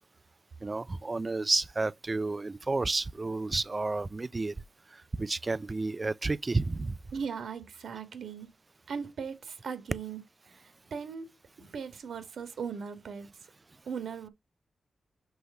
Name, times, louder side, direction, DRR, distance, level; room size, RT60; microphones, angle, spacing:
voice 1, 0.6-4.5 4.9-7.0, right 3 dB, 25° right, 0.3 m, -31 dB
voice 2, 7.1-8.5 8.9-10.2 10.5-10.6 10.9-11.3 11.6-13.3 13.9-14.3, right 6 dB, 75° right, 1.5 m, -38 dB
7.9 x 3.4 x 5.3 m
wide cardioid pair, 165°, 0 cm